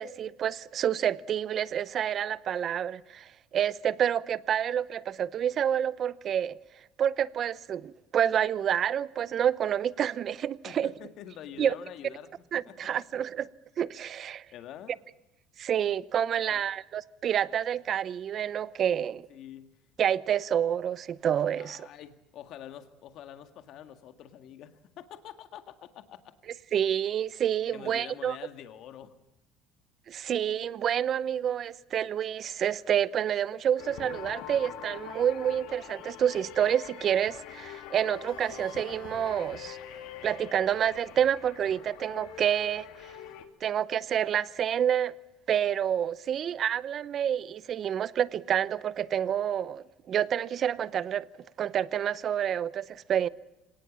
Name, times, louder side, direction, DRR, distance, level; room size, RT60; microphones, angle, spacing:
voice 1, 0.0-6.6 7.0-10.9 11.6-11.7 12.5-13.5 13.8-14.4 15.6-19.3 20.0-21.9 26.7-28.4 30.1-39.8 40.2-42.9 43.6-45.1 45.5-51.3 51.6-53.3, right 9 dB, 40° right, 0.7 m, -28 dB
voice 2, 10.7-12.9 14.5-14.9 16.4-16.6 19.3-19.7 21.6-26.2 27.7-29.1, left 10 dB, 55° left, 1.9 m, -46 dB
sound 1, 33.8-43.4, left 10 dB, 75° left, 2.4 m, -44 dB
25.5 x 18.5 x 7.4 m
cardioid pair, 135°, 0 cm